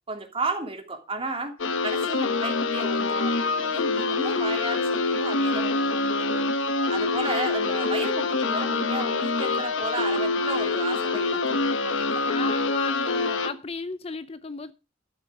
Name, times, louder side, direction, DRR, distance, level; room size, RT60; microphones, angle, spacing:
voice 1, 0.1-1.5 1.8-6.5 6.9-12.2, right 3 dB, 30° right, 2.8 m, -33 dB
sound 1, 1.6-13.5, left 3 dB, 80° left, 1.1 m, -25 dB
voice 2, 12.3-14.7, left 4 dB, 30° left, 0.6 m, -34 dB
12.5 x 8.8 x 4.8 m
head